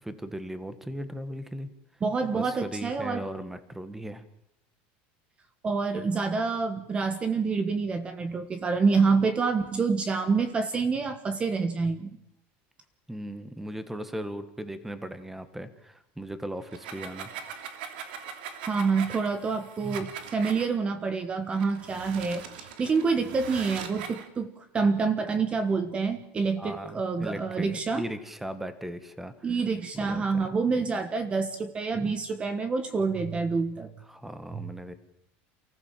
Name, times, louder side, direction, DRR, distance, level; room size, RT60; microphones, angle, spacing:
voice 1, 0.0-1.7 2.3-4.2 13.1-17.3 26.6-29.5 29.9-30.5 30.8-30.9 34.1-34.9, right 1 dB, 5° right, 12 dB, 1.6 m, -37 dB
voice 2, 2.0-3.2 5.6-12.2 18.7-28.0 29.4-33.9 34.5-34.7, right 4 dB, 20° right, 10 dB, 1.4 m, -27 dB
sound 1, 16.6-20.7 21.5-24.3, right 7 dB, 85° right, 3.0 m, -41 dB
28.5 x 15.0 x 7.5 m, 0.79 s
supercardioid pair, 145°, 5 cm